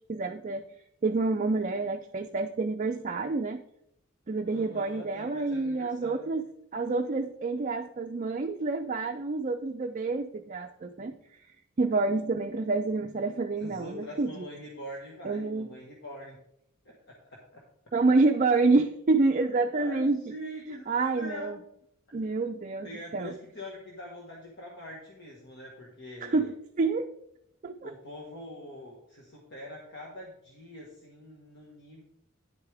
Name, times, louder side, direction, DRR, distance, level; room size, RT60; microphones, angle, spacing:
voice 1, 0.1-0.6 1.0-3.6 4.3-6.4 6.7-11.1 11.8-14.5 15.2-15.7 17.9-20.2 20.9-21.6 22.1-23.3 26.2-27.1 27.6-27.9, right 3 dB, 35° right, 5 dB, 0.4 m, -28 dB
voice 2, 4.5-6.3 13.6-16.4 16.8-17.6 19.7-21.6 22.1-22.2 22.8-26.5 27.8-32.0, left 1 dB, 55° left, -2 dB, 1.5 m, -44 dB
10.5 x 8.2 x 3.4 m, 0.76 s
head